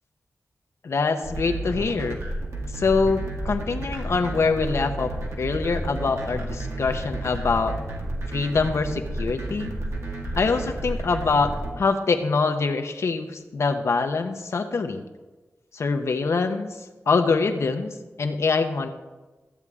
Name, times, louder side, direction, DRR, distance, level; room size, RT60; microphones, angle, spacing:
voice 1, 0.8-2.2 2.7-5.1 5.4-7.8 8.3-9.7 10.4-15.0 15.7-16.8 17.1-18.9, left 4 dB, 65° left, 6 dB, 0.9 m, -24 dB
sound 1, 1.2-11.7, right 1 dB, 75° right, 1.9 m, -31 dB
14.0 x 8.3 x 3.7 m, 1.2 s
wide cardioid pair, 95°, 5 cm